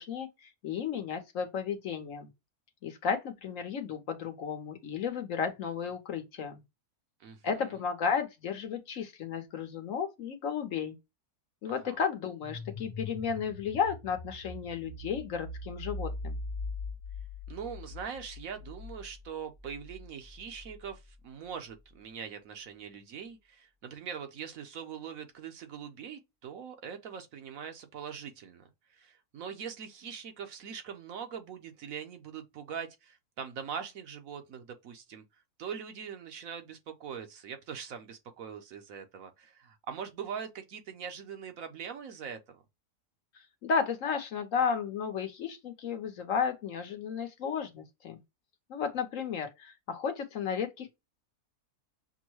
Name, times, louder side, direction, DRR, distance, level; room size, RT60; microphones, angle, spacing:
voice 1, 0.0-2.3 2.8-6.6 7.4-11.0 11.6-16.4 43.6-48.2 48.7-50.9, left 6 dB, 60° left, 1.1 m, -33 dB
voice 2, 7.2-7.8 11.8-12.0 17.5-35.2 35.6-42.6, right 7 dB, 65° right, 1.1 m, -42 dB
sound 1, 12.4-21.1, left 2 dB, 35° left, 0.7 m, -42 dB
6.1 x 2.1 x 3.0 m
omnidirectional pair, 1.6 m